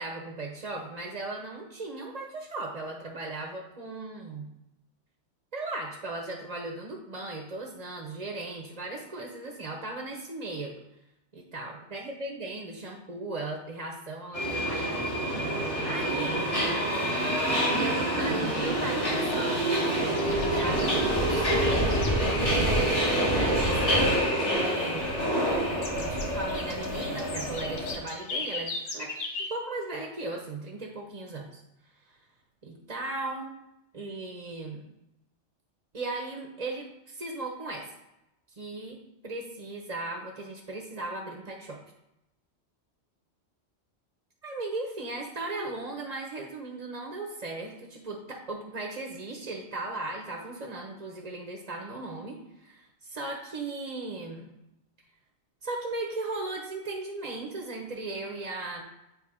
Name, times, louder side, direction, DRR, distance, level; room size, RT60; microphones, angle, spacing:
voice 1, 0.0-4.5 5.5-10.8 11.3-14.9 15.4-16.5 17.7-19.7 20.2-21.7 22.4-25.1 25.9-31.6 32.1-32.2 32.6-33.6 33.9-34.8 35.9-37.9 38.5-41.8 44.4-54.5 55.6-58.8, right 2 dB, 40° right, 1 dB, 0.8 m, -37 dB
Subway metro underground, 14.3-28.0, right 1 dB, 50° left, 2.8 m, -27 dB
sound 1, 20.2-23.0 23.3-24.5 24.8-25.6 25.8-29.5, left 3 dB, 70° left, 1.1 m, -39 dB
8.2 x 3.3 x 4.9 m, 0.91 s
omnidirectional pair, 1.2 m